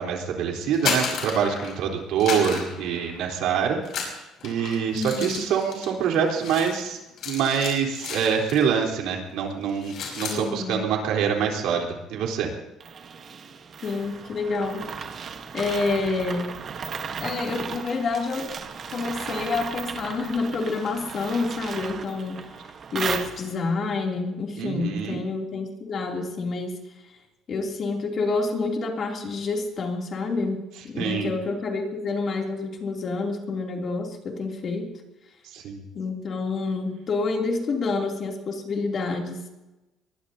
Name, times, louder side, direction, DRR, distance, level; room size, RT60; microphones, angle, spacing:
voice 1, 0.0-7.0 7.3-12.5 24.6-25.2 31.0-31.3 35.4-35.8, right 7 dB, 75° right, 1 dB, 3.8 m, -25 dB
sound 1, 0.6-1.9 2.2-3.4 3.8-8.8 9.0-9.3 9.6-10.4, left 5 dB, 55° left, 6.0 m, -33 dB
voice 2, 4.9-5.4 10.3-10.9 13.8-14.8 15.5-16.6 17.2-18.5 18.9-22.4 22.9-26.8 27.5-34.9 35.9-39.4, left 3 dB, 35° left, 1 dB, 2.9 m, -28 dB
sound 2, 12.8-23.8, right 6 dB, 35° right, 1.2 m, -36 dB
23.0 x 21.0 x 2.8 m, 1.0 s
cardioid pair, 160°, 0 cm